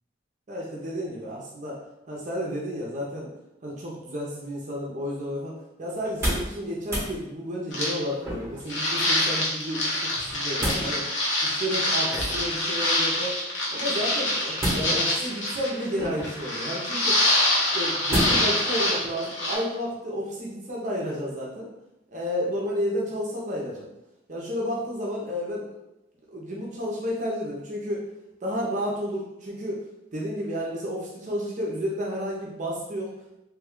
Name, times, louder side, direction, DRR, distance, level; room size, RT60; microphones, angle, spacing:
voice 1, 0.5-1.8 2.1-3.3 3.6-5.5 5.8-9.9 10.3-11.1 11.4-13.3 13.7-17.4 17.7-21.7 22.1-23.9 24.3-25.7 26.3-28.0 28.4-29.8 30.1-33.4, equal, 40° right, -4 dB, 0.6 m, -31 dB
sound 1, 6.0-6.5 6.8-7.1 8.2-8.7 10.1-10.9 12.1-12.6 14.6-15.2 16.0-16.4 18.1-18.6 19.0-19.1, equal, 15° right, 1.0 m, -29 dB
sound 2, 7.7-7.9 8.7-19.5, left 1 dB, 75° left, 0.9 m, -25 dB
3.0 x 2.2 x 3.6 m, 0.89 s
head